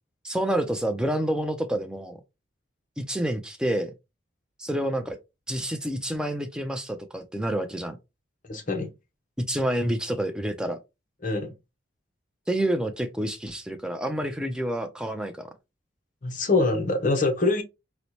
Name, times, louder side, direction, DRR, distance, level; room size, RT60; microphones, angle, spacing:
voice 1, 0.2-2.2 3.0-3.9 4.6-5.2 5.5-8.0 9.5-10.8 12.5-15.5, right 1 dB, 5° right, 0.3 m, -28 dB
voice 2, 8.5-8.9 11.2-11.5 16.2-17.6, left 3 dB, 40° left, 0.6 m, -24 dB
4.0 x 2.0 x 2.9 m
head